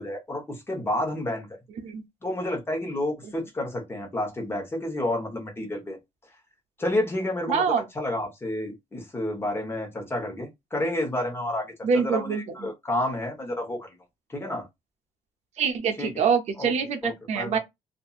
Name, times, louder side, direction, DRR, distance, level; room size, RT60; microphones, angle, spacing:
voice 1, 0.0-1.5 2.2-6.0 6.8-11.7 11.9-13.9 14.3-14.7 16.0-16.1 16.6-16.7 17.0-17.6, left 1 dB, 20° left, 1.0 m, -30 dB
voice 2, 7.5-7.9 11.8-12.7 15.6-17.6, right 6 dB, 65° right, 0.6 m, -25 dB
2.7 x 2.5 x 2.4 m
cardioid pair, 140°, 12 cm